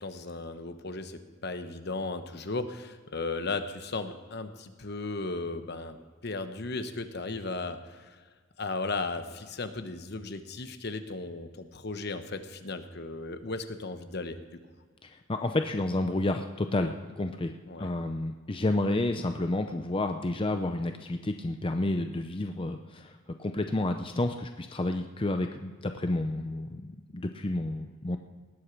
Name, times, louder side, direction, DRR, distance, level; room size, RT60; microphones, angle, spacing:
voice 1, 0.0-6.0 6.2-8.1 8.6-14.4 17.7-17.9, left 3 dB, 55° left, 9 dB, 1.0 m, -36 dB
voice 2, 15.0-23.1 23.4-28.2, left 2 dB, 25° left, 6 dB, 0.6 m, -30 dB
19.0 x 8.3 x 6.0 m, 1.5 s
head